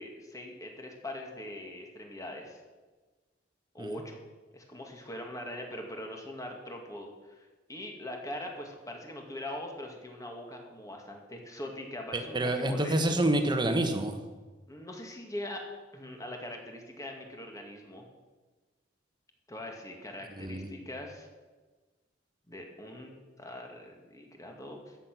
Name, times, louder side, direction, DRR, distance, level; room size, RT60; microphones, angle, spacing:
voice 1, 0.0-2.6 3.7-4.2 4.5-13.0 14.7-15.7 15.9-18.1 19.5-21.3 22.5-25.0, left 1 dB, 20° left, 2 dB, 2.0 m, -42 dB
voice 2, 12.1-14.2 20.4-20.7, right 1 dB, 25° right, 6 dB, 1.3 m, -28 dB
13.5 x 8.8 x 6.1 m, 1.3 s
head